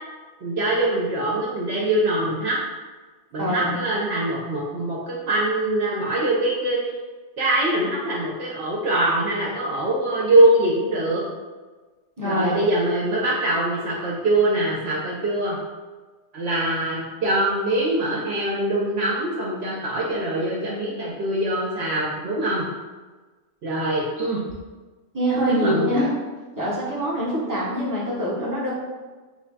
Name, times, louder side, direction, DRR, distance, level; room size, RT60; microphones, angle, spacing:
voice 1, 0.4-2.6 3.3-6.9 7.4-11.2 12.2-15.6 16.3-22.7 23.6-24.4 25.5-25.9, right 1 dB, 70° right, -5 dB, 0.8 m, -23 dB
voice 2, 3.4-3.7 12.2-12.6 25.1-26.1 26.6-28.7, equal, 20° right, -7 dB, 0.7 m, -24 dB
3.2 x 2.2 x 3.8 m, 1.3 s
omnidirectional pair, 1.2 m